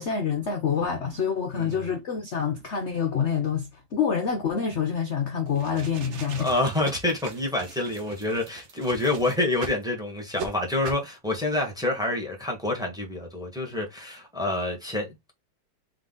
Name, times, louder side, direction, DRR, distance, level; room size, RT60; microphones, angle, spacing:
voice 1, 0.0-6.5, left 7 dB, 70° left, 0.6 m, -27 dB
sound 1, 5.5-9.8 10.3-10.5 10.8-11.1, right 5 dB, 60° right, 0.7 m, -40 dB
voice 2, 6.4-15.3, left 2 dB, ahead, 1.1 m, -27 dB
3.8 x 3.3 x 3.7 m
omnidirectional pair, 2.1 m